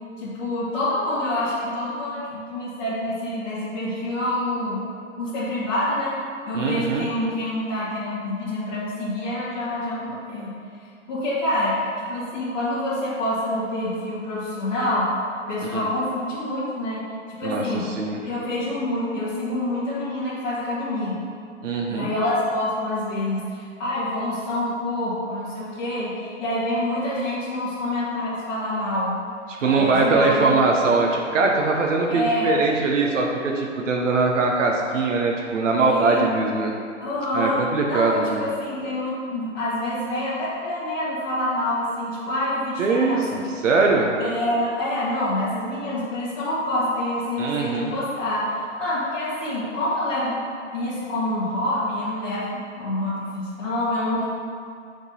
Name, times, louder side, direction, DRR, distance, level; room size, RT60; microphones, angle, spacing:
voice 1, 0.2-4.8 5.2-6.2 6.5-10.5 11.1-15.1 15.5-17.0 17.4-17.9 18.2-21.2 21.9-29.2 29.6-30.6 32.1-32.5 35.8-36.2 37.0-37.6 37.9-43.4 44.2-50.4 50.7-54.2, left 1 dB, 40° left, -11 dB, 1.3 m, -27 dB
voice 2, 6.5-7.1 15.6-15.9 17.4-18.2 21.6-22.1 29.5-36.7 37.3-38.5 42.8-44.1 47.4-47.9, right 3 dB, 85° right, 0 dB, 0.8 m, -22 dB
6.1 x 3.8 x 4.1 m, 2.3 s
hypercardioid pair, 165°, 37 cm